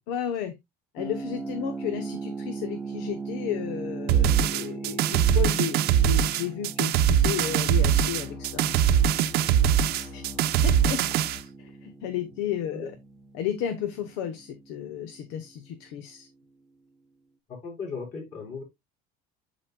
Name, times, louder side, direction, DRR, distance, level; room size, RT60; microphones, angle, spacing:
voice 1, 0.1-0.5 0.9-9.0 10.0-10.2 10.6-11.0 11.3-12.9 13.3-16.3, left 10 dB, 85° left, 1.1 m, -33 dB
sound 1, 1.0-15.7, right 4 dB, ahead, 0.7 m, -39 dB
sound 2, 4.1-11.4, right 9 dB, 60° right, 0.7 m, -22 dB
sound 3, 7.3-11.4, left 7 dB, 65° left, 3.1 m, -44 dB
voice 2, 17.5-18.6, left 5 dB, 40° left, 4.7 m, -37 dB
12.5 x 4.2 x 2.3 m
cardioid pair, 135°, 18 cm